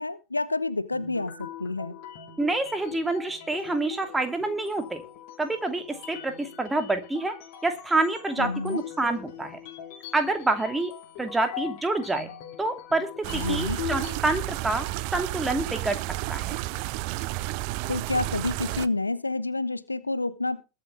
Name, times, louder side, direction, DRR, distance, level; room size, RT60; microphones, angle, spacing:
voice 1, 0.0-2.0 8.4-8.8 13.3-13.8 17.9-20.6, left 2 dB, 80° left, 0.9 m, -29 dB
sound 1, 0.9-14.2, left 10 dB, 45° left, 3.0 m, -41 dB
voice 2, 2.4-5.0 5.4-7.3 7.6-9.6 10.1-10.9 11.2-12.3 12.6-14.9 15.1-16.0 16.3-16.6, right 2 dB, 10° right, 2.6 m, -27 dB
sound 2, 13.2-18.9, right 18 dB, 45° right, 0.7 m, -32 dB
21.5 x 7.3 x 3.5 m
figure-of-eight pair, 90°, 0 cm